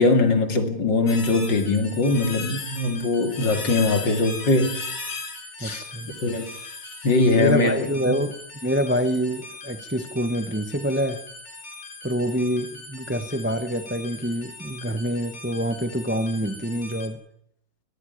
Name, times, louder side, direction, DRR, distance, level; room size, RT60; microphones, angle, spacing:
voice 1, 0.0-4.8 5.6-6.5 7.0-7.7 8.1-8.2, left 3 dB, 55° left, 3.1 m, -21 dB
sound 1, 1.1-17.1, left 3 dB, 35° left, 3.7 m, -38 dB
voice 2, 5.6-6.1 7.3-11.2 12.0-17.2, equal, 20° right, 0.3 m, -26 dB
21.5 x 14.0 x 9.9 m
omnidirectional pair, 2.4 m